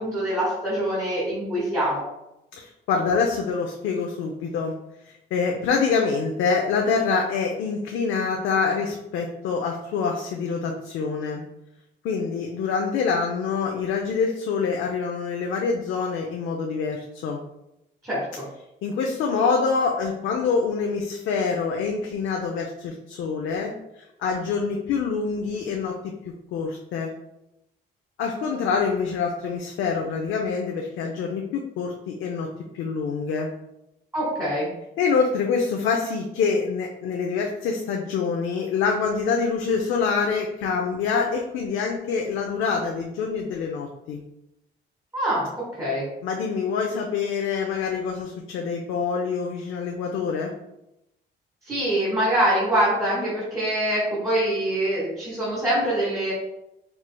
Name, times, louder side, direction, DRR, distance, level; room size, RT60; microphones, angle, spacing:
voice 1, 0.0-2.0 18.0-18.4 34.1-34.7 45.1-46.1 51.7-56.3, right 1 dB, 15° right, -7 dB, 1.4 m, -24 dB
voice 2, 2.6-4.7 5.3-11.4 12.0-17.4 18.8-26.0 26.2-27.1 28.2-32.5 32.7-33.5 35.0-44.2 46.2-50.5, left 5 dB, 80° left, 1 dB, 0.5 m, -26 dB
4.5 x 3.1 x 2.2 m, 0.87 s
cardioid pair, 90°, 20 cm